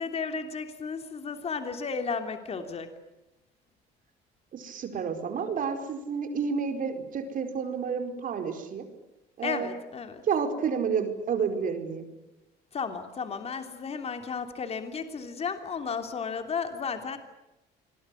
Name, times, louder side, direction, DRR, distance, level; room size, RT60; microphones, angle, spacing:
voice 1, 0.0-2.9 9.4-10.2 12.7-17.2, left 5 dB, 35° left, 7 dB, 3.1 m, -33 dB
voice 2, 4.5-8.8 9.4-9.7 10.2-12.1, right 6 dB, 55° right, 6 dB, 4.7 m, -30 dB
27.0 x 22.5 x 9.9 m, 0.98 s
cardioid pair, 110°, 17 cm